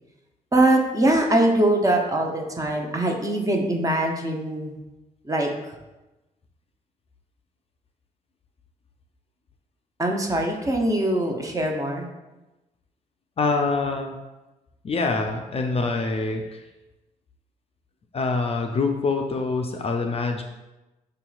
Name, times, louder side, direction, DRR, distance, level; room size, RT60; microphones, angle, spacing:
voice 1, 0.5-4.7 5.2-5.5 10.0-12.1, right 1 dB, 20° right, 1 dB, 0.7 m, -22 dB
voice 2, 13.4-14.2 14.8-16.6 18.1-20.4, left 3 dB, 35° left, 3 dB, 0.4 m, -25 dB
5.0 x 2.9 x 2.3 m, 1.0 s
supercardioid pair, 60°, 16 cm